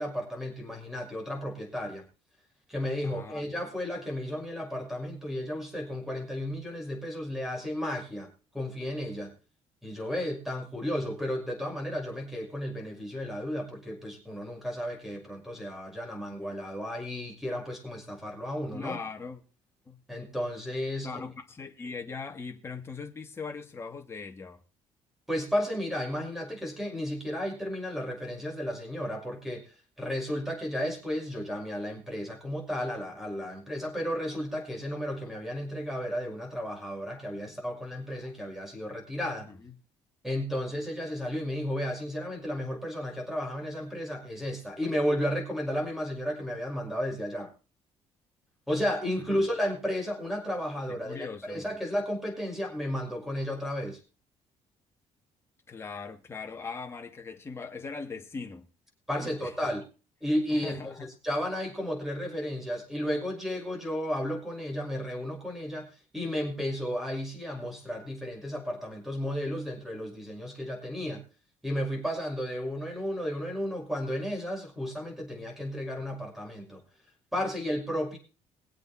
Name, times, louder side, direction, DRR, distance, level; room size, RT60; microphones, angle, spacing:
voice 1, 0.0-2.1 2.7-9.4 9.8-19.0 20.1-21.2 25.3-39.5 40.2-47.5 48.7-54.0 59.1-59.9 60.2-60.9 61.2-71.2 71.6-76.8 77.3-78.2, equal, 5° right, 6.0 m, -33 dB
voice 2, 3.0-3.5 18.7-19.4 19.9-20.0 21.0-24.6 37.5-37.6 39.5-39.7 51.0-51.7 55.7-58.7 59.2-59.7 60.5-60.9, left 5 dB, 20° left, 2.6 m, -40 dB
23.0 x 8.0 x 4.4 m
cardioid pair, 140°, 11 cm